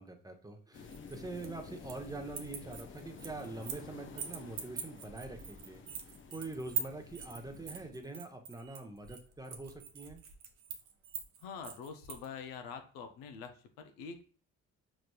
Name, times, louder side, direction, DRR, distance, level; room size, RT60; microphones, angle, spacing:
voice 1, 0.0-5.8 6.3-10.2, right 3 dB, 10° right, 4 dB, 0.7 m, -44 dB
sound 1, 0.7-7.9, left 5 dB, 35° left, 0.6 m, -51 dB
sound 2, 0.9-2.1 2.3-3.9 4.2-12.3, right 8 dB, 75° right, 0.7 m, -42 dB
voice 2, 11.4-14.2, left 6 dB, 90° left, 7 dB, 0.6 m, -45 dB
5.0 x 3.1 x 2.2 m, 0.41 s
supercardioid pair, 70°, 33 cm